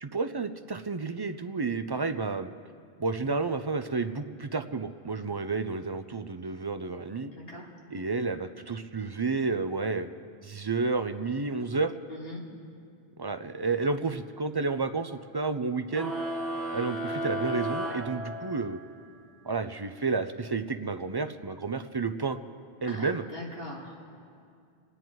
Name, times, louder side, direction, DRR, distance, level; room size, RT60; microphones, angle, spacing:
voice 1, 0.0-2.5 3.0-7.3 7.9-10.1 10.4-11.9 13.2-16.1 16.7-18.8 19.4-22.4 22.8-23.2, right 4 dB, 35° right, 9 dB, 0.4 m, -31 dB
voice 2, 7.3-7.7 12.1-12.5 22.9-23.9, left 1 dB, 65° left, -2 dB, 2.6 m, -41 dB
sound 1, 15.9-18.9, right 1 dB, ahead, 2.0 m, -34 dB
29.0 x 9.8 x 4.6 m, 2.3 s
omnidirectional pair, 1.0 m